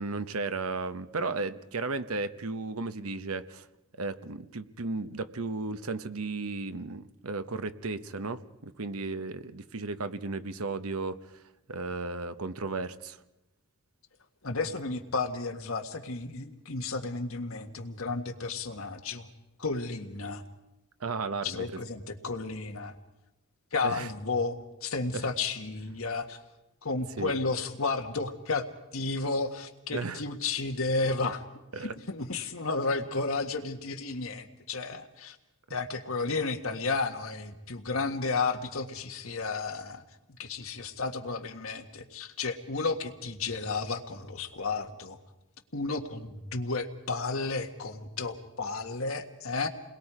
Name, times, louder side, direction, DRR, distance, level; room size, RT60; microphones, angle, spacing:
voice 1, 0.0-3.7 4.0-11.4 11.7-13.2 21.0-21.8 23.8-24.1 25.1-25.2 27.2-27.3 29.9-30.2 31.7-31.9, right 3 dB, 85° right, 11 dB, 1.0 m, -34 dB
voice 2, 14.4-19.3 19.6-20.4 21.4-22.9 23.7-26.4 26.8-28.7 28.9-31.4 31.8-35.4 35.7-40.0 40.4-45.2 45.7-49.7, left 3 dB, 70° left, 4 dB, 1.7 m, -32 dB
29.0 x 21.5 x 4.9 m, 0.95 s
head